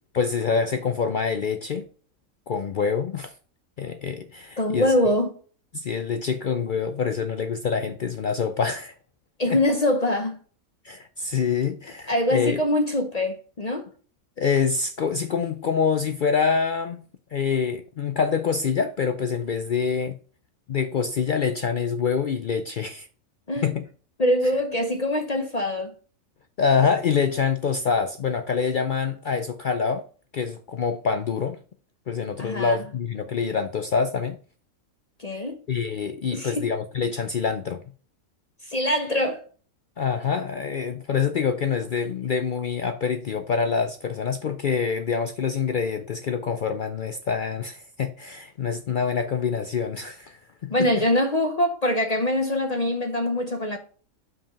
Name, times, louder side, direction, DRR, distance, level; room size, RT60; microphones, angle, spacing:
voice 1, 0.1-1.9 2.5-3.3 3.8-4.9 5.7-8.9 9.5-9.6 10.8-12.6 14.4-17.1 17.3-20.1 20.7-23.1 23.6-23.9 26.6-30.0 30.3-31.6 32.1-34.4 35.3-37.8 40.0-51.0, left 6 dB, 70° left, 0.4 m, -26 dB
voice 2, 4.6-5.3 9.4-10.4 12.1-13.9 23.5-23.7 24.2-25.9 32.4-32.8 35.2-35.6 36.3-36.7 38.6-39.4 50.7-53.8, left 1 dB, 35° left, 0.7 m, -24 dB
5.9 x 4.9 x 5.0 m
omnidirectional pair, 1.5 m